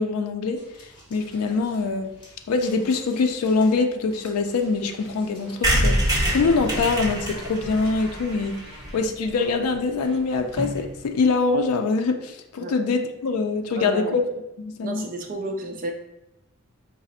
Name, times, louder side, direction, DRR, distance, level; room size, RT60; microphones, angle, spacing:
voice 1, 0.0-2.1 2.5-6.0 6.3-8.6 8.9-14.2 14.6-15.1, left 4 dB, 85° left, 0.4 m, -24 dB
sound 1, 0.5-11.9, left 1 dB, 20° left, 1.2 m, -45 dB
Motorcycle, 4.1-10.4, equal, ahead, 1.2 m, -45 dB
sound 2, 5.6-9.3 9.7-9.8 10.0-10.1 10.3-10.4 10.6-10.9, right 1 dB, 15° right, 0.8 m, -25 dB
voice 2, 13.7-14.2 14.8-15.9, right 2 dB, 40° right, 0.5 m, -32 dB
4.8 x 2.0 x 4.1 m
head